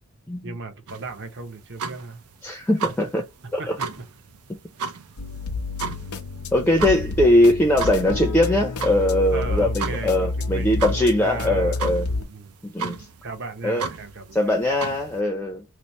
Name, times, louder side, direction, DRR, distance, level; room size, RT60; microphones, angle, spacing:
voice 1, 0.4-2.2 3.6-4.0 9.3-11.8 12.1-12.6 13.2-14.5, right 3 dB, 55° right, 0.9 m, -36 dB
sound 1, 0.9-15.2, right 5 dB, 85° right, 0.6 m, -35 dB
voice 2, 2.4-3.2 3.5-3.8 6.5-12.1 12.6-13.0 13.6-13.9 14.3-15.6, left 1 dB, 10° left, 0.5 m, -21 dB
sound 2, 5.2-12.2, left 3 dB, 75° left, 0.7 m, -29 dB
3.1 x 2.0 x 4.0 m
head